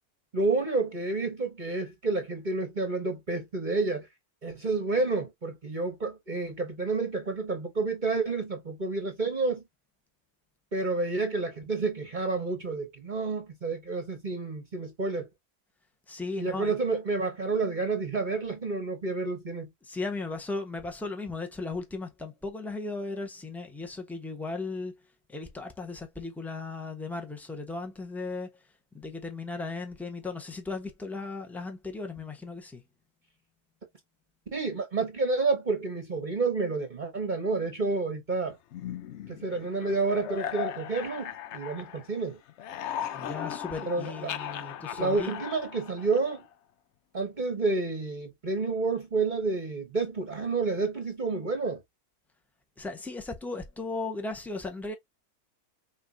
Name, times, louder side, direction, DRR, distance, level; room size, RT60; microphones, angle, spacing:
voice 1, 0.3-4.1 4.4-9.6 10.7-15.3 16.4-19.7 34.5-38.6 39.3-42.4 43.9-44.5 45.0-46.4 47.1-51.8, right 3 dB, 35° right, 1.2 m, -29 dB
voice 2, 16.1-16.8 19.8-25.0 25.3-28.6 28.9-32.8 43.1-45.4 52.8-54.9, left 3 dB, ahead, 0.9 m, -36 dB
sound 1, 38.7-42.2 42.5-46.5, left 10 dB, 70° left, 0.7 m, -38 dB
6.0 x 3.1 x 2.7 m
omnidirectional pair, 1.7 m